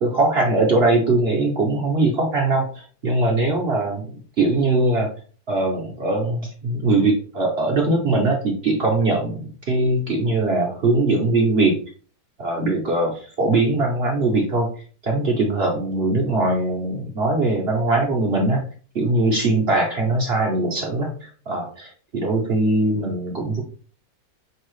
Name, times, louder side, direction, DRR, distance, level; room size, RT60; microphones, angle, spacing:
voice 1, 0.0-5.1 5.5-11.8 12.4-14.7 15.0-18.6 18.9-23.6, right 2 dB, 50° right, -1 dB, 0.9 m, -21 dB
5.5 x 2.9 x 3.1 m, 0.42 s
omnidirectional pair, 1.8 m